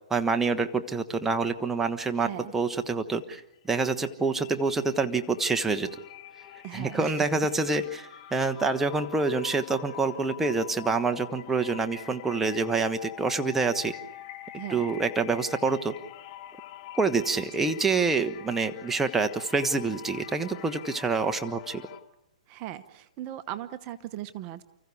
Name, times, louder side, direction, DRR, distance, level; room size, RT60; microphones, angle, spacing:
voice 1, 0.1-3.4 3.7-5.9 6.7-8.0 8.3-13.9 14.7-15.9 17.0-21.9, right 4 dB, 10° right, 5 dB, 1.3 m, -27 dB
voice 2, 2.2-2.5 6.6-7.5 7.7-7.9 14.5-14.9 17.6-17.7 22.5-24.6, right 13 dB, 35° right, 11 dB, 1.0 m, -38 dB
sound 1, 3.4-3.6 3.9-22.0, left 13 dB, 40° left, 2.3 m, -45 dB
30.0 x 15.0 x 8.4 m, 0.87 s
hypercardioid pair, 135°, 4 cm